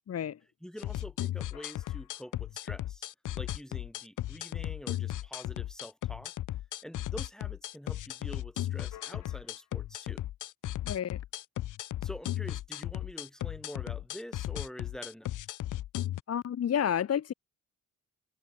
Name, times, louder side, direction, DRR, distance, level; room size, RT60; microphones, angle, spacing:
voice 1, 0.1-0.4 10.8-11.2 16.3-17.3, left 9 dB, 55° left, 1.0 m, -30 dB
voice 2, 0.6-3.1 3.3-6.3 6.8-10.2 12.0-15.3, equal, ahead, 3.5 m, -46 dB
sound 1, 0.8-16.2, left 13 dB, 75° left, 0.6 m, -36 dB
wide cardioid pair, 130°, 31 cm